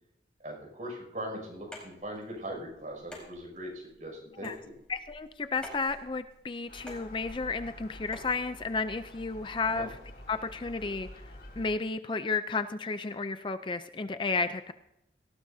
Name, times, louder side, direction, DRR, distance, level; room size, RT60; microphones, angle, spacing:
voice 1, 0.4-4.7 9.6-9.9, equal, 45° right, 1 dB, 6.2 m, -40 dB
sound 1, 1.7-8.4, left 1 dB, 5° left, 4.4 m, -50 dB
voice 2, 4.9-9.9 10.3-11.1 11.6-14.7, left 4 dB, 25° left, 10 dB, 0.4 m, -32 dB
Gull seagull, 6.7-11.7, left 1 dB, 65° left, 3.8 m, -48 dB
18.5 x 17.5 x 2.7 m, 0.84 s
head